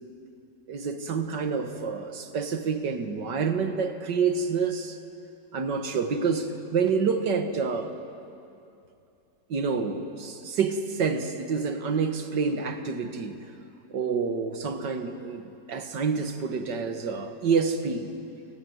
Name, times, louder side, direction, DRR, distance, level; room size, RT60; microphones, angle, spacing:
voice 1, 0.7-5.0 5.5-7.9 9.5-13.4 13.9-18.1, right 5 dB, 70° right, 8 dB, 2.2 m, -28 dB
27.5 x 19.5 x 9.7 m, 2.7 s
omnidirectional pair, 2.0 m